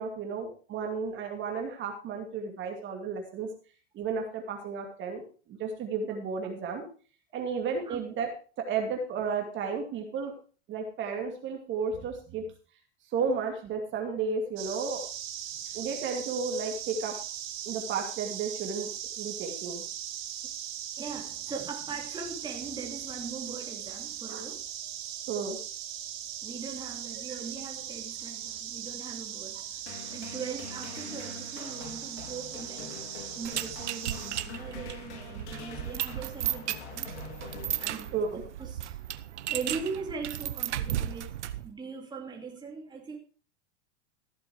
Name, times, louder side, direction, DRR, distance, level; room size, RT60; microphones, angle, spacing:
voice 1, 0.0-3.5 3.9-5.2 5.5-6.9 7.3-10.3 10.7-12.4 13.1-15.0 15.7-17.2 17.6-18.9 19.2-19.8 24.3-24.4 25.3-25.6 27.3-27.4 38.1-38.4, right 5 dB, 35° right, 2.5 m, -33 dB
sound 1, 14.6-34.4, right 10 dB, 60° right, 5.3 m, -39 dB
voice 2, 21.0-24.7 26.4-33.0 33.4-37.2 37.8-39.0 39.5-41.3 41.6-43.2, right 5 dB, 10° right, 2.7 m, -40 dB
sound 2, 29.9-38.4, left 5 dB, 80° left, 4.1 m, -45 dB
sound 3, 33.4-41.7, right 12 dB, 90° right, 1.0 m, -35 dB
15.0 x 7.6 x 4.8 m
supercardioid pair, 130°, 34 cm